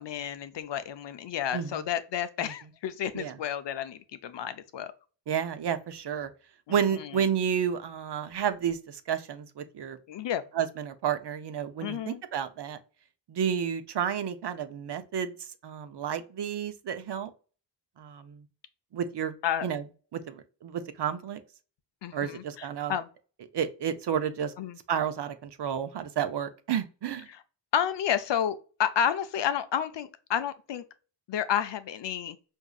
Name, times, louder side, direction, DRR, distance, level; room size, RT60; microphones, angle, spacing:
voice 1, 0.0-4.9 6.7-7.2 10.1-10.4 11.8-12.2 19.4-19.7 22.0-23.1 24.6-24.8 27.3-27.4 27.7-30.8 31.3-32.4, left 9 dB, 70° left, 0.6 m, -31 dB
voice 2, 5.3-6.3 6.7-10.0 10.5-12.8 13.3-15.3 15.6-17.3 18.0-18.4 18.9-19.3 19.6-19.8 20.1-21.4 22.1-22.9 23.5-24.5 24.9-27.3, right 8 dB, 65° right, 0.6 m, -31 dB
4.9 x 2.7 x 2.3 m
wide cardioid pair, 80°, 44 cm